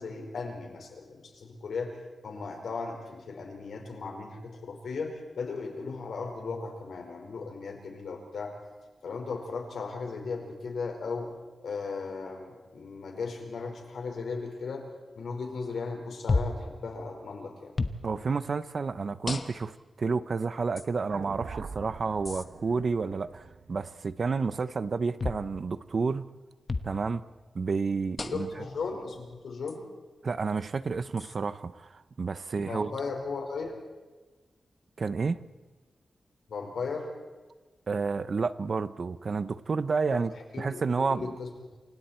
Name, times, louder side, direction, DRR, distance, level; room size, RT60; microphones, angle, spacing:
voice 1, 0.0-2.0 2.2-8.5 9.0-11.3 11.6-14.8 15.1-17.7 26.9-27.0 28.3-29.8 32.7-33.7 36.5-37.1 40.1-41.5, left 4 dB, 85° left, 4.9 m, -36 dB
sound 1, 16.3-16.7 17.8-18.0 19.3-19.8 20.8-20.9 22.2-22.4 25.2-25.5 26.7-26.9 28.2-28.6 29.7-29.8 31.2-31.4, left 3 dB, 30° left, 1.1 m, -31 dB
voice 2, 18.0-26.2 26.8-27.2 27.5-28.5 30.2-32.9 35.0-35.4 37.9-40.3 40.6-41.3, right 4 dB, 45° right, 0.7 m, -30 dB
sound 2, 21.1-25.4, right 5 dB, 70° right, 1.3 m, -44 dB
28.5 x 25.5 x 4.5 m
wide cardioid pair, 165°, 0 cm